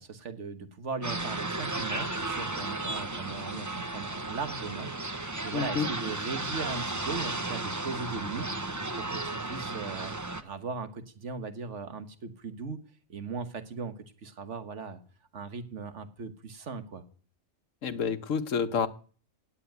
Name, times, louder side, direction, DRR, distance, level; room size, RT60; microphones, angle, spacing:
voice 1, 0.0-10.1 10.4-12.8 13.1-13.9 14.2-15.0 15.3-17.0, right 4 dB, 60° right, 1.6 m, -38 dB
sound 1, 1.0-10.4, right 2 dB, 15° right, 0.8 m, -34 dB
voice 2, 5.5-5.9 17.8-18.9, left 6 dB, 70° left, 1.4 m, -29 dB
17.0 x 7.3 x 9.4 m
omnidirectional pair, 1.4 m